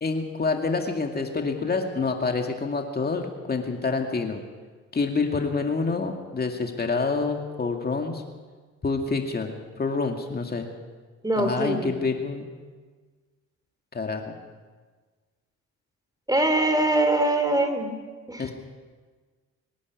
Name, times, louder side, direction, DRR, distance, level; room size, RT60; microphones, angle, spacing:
voice 1, 0.0-4.4 4.9-8.2 8.8-10.7 11.4-12.4 13.9-14.4 18.4-18.5, left 4 dB, 30° left, 3 dB, 2.3 m, -27 dB
voice 2, 11.2-11.9 16.3-17.9 18.3-18.5, right 1 dB, 10° right, 7 dB, 3.2 m, -23 dB
24.5 x 11.5 x 9.5 m, 1.4 s
cardioid pair, 90°, 30 cm